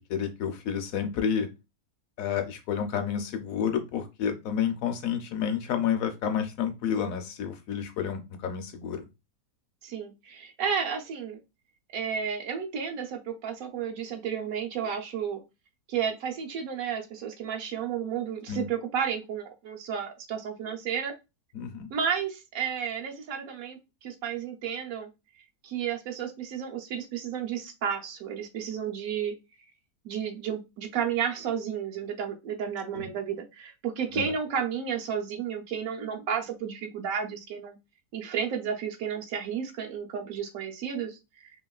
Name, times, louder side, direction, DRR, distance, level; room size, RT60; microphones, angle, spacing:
voice 1, 0.1-1.5 2.2-9.0 18.5-18.7 21.5-21.9 32.9-33.1 34.1-34.3, left 8 dB, 70° left, 7 dB, 0.9 m, -30 dB
voice 2, 9.8-11.4 11.9-15.4 15.9-21.1 21.9-25.1 25.6-29.3 30.0-37.8 38.1-41.2, right 7 dB, 70° right, 3 dB, 1.0 m, -32 dB
2.9 x 2.9 x 2.3 m, 0.25 s
omnidirectional pair, 1.6 m